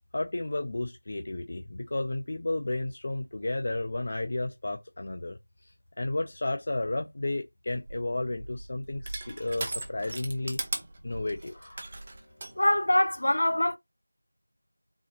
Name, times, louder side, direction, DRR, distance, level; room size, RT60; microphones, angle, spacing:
voice 1, 0.1-5.7 6.0-10.6 11.0-11.8, left 2 dB, 35° left, 0.4 m, -32 dB
Crushing, 7.7-12.5, right 2 dB, 20° right, 0.7 m, -38 dB
voice 2, 12.6-13.8, left 1 dB, 60° left, 1.0 m, -24 dB
3.9 x 3.9 x 2.9 m
figure-of-eight pair, 175°, 0 cm